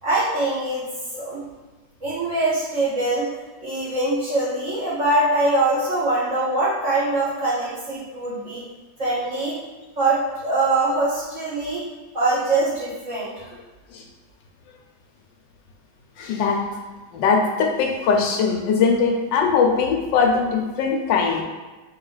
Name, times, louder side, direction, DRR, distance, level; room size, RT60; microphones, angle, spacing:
voice 1, 0.0-0.8 1.2-1.4 2.0-3.3 3.6-8.6 9.0-9.6 10.0-11.8 12.1-13.5, right 2 dB, 45° right, -9 dB, 1.9 m, -23 dB
voice 2, 16.2-16.6 17.1-21.4, left 5 dB, 85° left, 1 dB, 1.4 m, -20 dB
3.7 x 3.1 x 3.9 m, 1.2 s
omnidirectional pair, 1.9 m